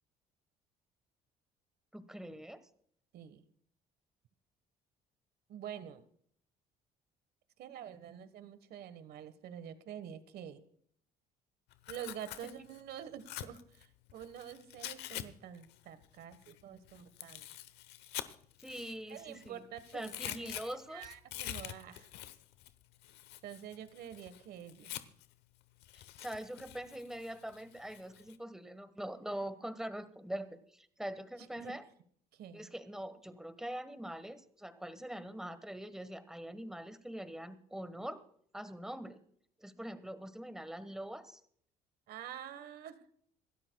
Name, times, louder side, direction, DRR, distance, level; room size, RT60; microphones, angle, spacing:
voice 1, 1.9-2.6 18.6-19.6 19.9-21.1 25.9-31.9 32.5-38.2 38.5-39.2 39.6-41.4, right 1 dB, 5° right, 11 dB, 1.3 m, -43 dB
voice 2, 5.5-6.0 7.6-10.6 11.9-17.5 19.1-22.1 23.4-24.9 31.4-31.8 32.4-32.7 42.1-43.0, right 9 dB, 70° right, 12 dB, 1.3 m, -47 dB
Tearing, 11.7-15.2 15.5-19.5 19.8-25.3 25.8-28.4, left 14 dB, 90° left, 0.9 m, -46 dB
26.5 x 13.0 x 2.3 m, 0.62 s
cardioid pair, 110°, 17 cm